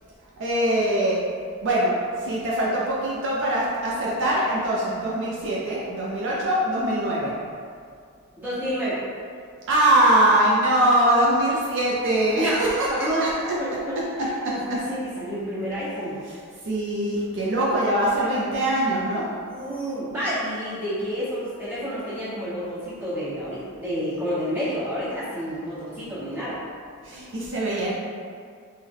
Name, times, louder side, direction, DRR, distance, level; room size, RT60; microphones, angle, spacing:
voice 1, 0.4-1.2 1.6-7.3 9.7-12.9 13.2-13.6 14.0-14.1 14.4-14.5 16.3-16.4 16.6-19.3 27.0-27.9, right 1 dB, 55° right, -5 dB, 0.5 m, -22 dB
voice 2, 8.4-9.0 11.5-11.6 12.3-13.3 13.6-16.1 17.2-17.3 19.5-26.6, equal, 10° right, -12 dB, 1.1 m, -29 dB
3.6 x 2.1 x 3.4 m, 2.2 s
head